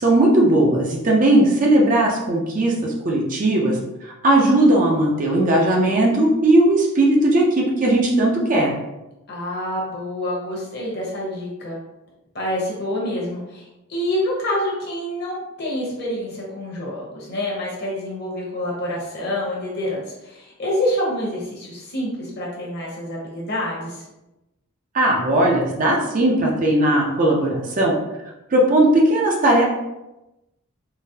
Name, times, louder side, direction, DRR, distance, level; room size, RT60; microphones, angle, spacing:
voice 1, 0.0-8.7 24.9-27.9 28.5-29.6, right 1 dB, 35° right, -1 dB, 0.5 m, -18 dB
voice 2, 9.3-11.8 12.3-24.1, left 1 dB, 50° left, -4 dB, 0.9 m, -27 dB
3.8 x 2.0 x 2.7 m, 0.97 s
head